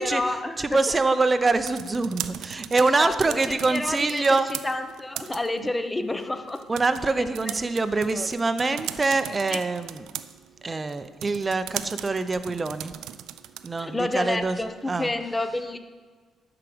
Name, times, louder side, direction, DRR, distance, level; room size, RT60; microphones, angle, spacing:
voice 1, 0.0-1.0 2.8-4.2 4.5-6.6 7.2-7.5 8.1-8.3 8.7-8.8 9.5-9.6 13.8-15.8, left 2 dB, 15° left, 8 dB, 0.7 m, -30 dB
voice 2, 0.6-4.5 6.7-10.0 10.6-12.9 13.6-14.6 14.9-15.1, right 3 dB, 25° right, 11 dB, 0.6 m, -24 dB
sound 1, 1.4-13.9, right 12 dB, 90° right, 0.3 m, -39 dB
12.0 x 4.9 x 5.0 m, 1.5 s
cardioid pair, 90°, 0 cm